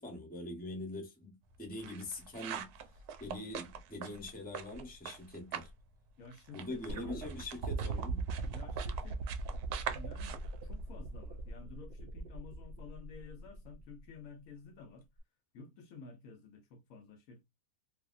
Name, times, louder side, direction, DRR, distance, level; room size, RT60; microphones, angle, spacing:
voice 1, 0.0-2.7 3.2-5.7 6.5-8.3, left 1 dB, 10° left, 0.7 m, -43 dB
sound 1, 1.5-5.8 6.1-11.4, right 8 dB, 85° right, 1.1 m, -44 dB
voice 2, 6.2-7.2 8.4-9.2 9.9-15.1 15.5-17.4, left 4 dB, 70° left, 1.0 m, -52 dB
sound 2, 6.9-14.1 15.2-15.3, right 4 dB, 65° right, 0.6 m, -42 dB
2.9 x 2.7 x 2.4 m
omnidirectional pair, 1.6 m